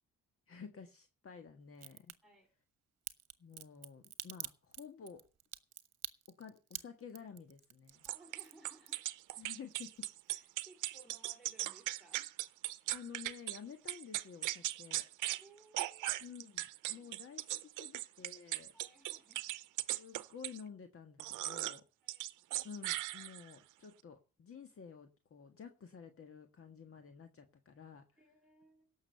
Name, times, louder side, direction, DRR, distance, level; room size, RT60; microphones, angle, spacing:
voice 1, 0.5-2.1 3.4-5.3 6.4-8.1 9.4-10.1 12.9-15.0 16.2-18.7 20.0-21.8 22.6-28.0, left 6 dB, 45° left, 6 dB, 1.6 m, -51 dB
Crack, 1.7-2.1 3.1-9.3 9.6-10.3 10.6-10.7, right 10 dB, 55° right, 1.1 m, -47 dB
voice 2, 8.0-9.1 10.3-12.3 15.4-16.2 16.8-17.2 17.5-17.9 18.7-19.5 22.0-22.3 28.2-28.9, right 2 dB, ahead, 1 dB, 3.3 m, -63 dB
sound 1, 8.1-13.6 13.9-15.4 15.7-20.6 21.2-21.8 22.1-23.6, right 16 dB, 90° right, 0.7 m, -38 dB
17.0 x 6.5 x 6.8 m, 0.35 s
cardioid pair, 90°, 30 cm